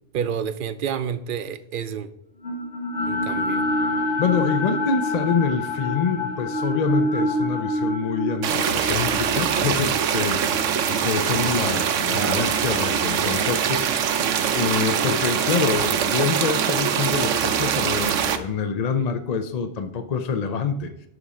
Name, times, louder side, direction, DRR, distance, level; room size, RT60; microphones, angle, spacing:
voice 1, 0.1-2.1 3.1-3.6 12.1-12.5, right 8 dB, 55° right, 12 dB, 0.7 m, -29 dB
sound 1, 2.4-12.6, left 1 dB, 65° left, 1.7 m, -27 dB
voice 2, 4.2-14.2 14.5-21.1, left 5 dB, 45° left, 8 dB, 0.5 m, -26 dB
sound 2, 8.4-18.4, right 8 dB, 85° right, 1.1 m, -23 dB
11.0 x 4.2 x 4.9 m, 0.80 s
omnidirectional pair, 1.3 m